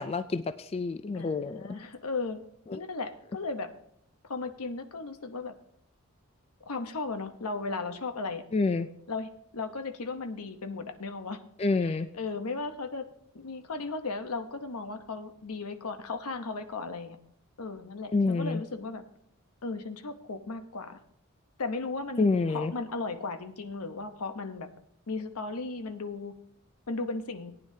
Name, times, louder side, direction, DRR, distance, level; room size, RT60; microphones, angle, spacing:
voice 1, 0.0-1.6 2.7-2.8 8.5-8.9 11.6-12.1 18.1-18.6 22.2-22.7, left 3 dB, 25° left, 11 dB, 0.3 m, -27 dB
voice 2, 1.1-2.4 2.7-3.7 4.2-5.5 6.6-8.4 9.1-11.4 11.8-13.1 13.3-17.2 17.6-19.0 19.6-21.0 21.6-24.7 25.1-26.3 26.9-27.5, left 3 dB, 85° left, 8 dB, 1.0 m, -36 dB
18.0 x 9.6 x 2.8 m, 0.70 s
head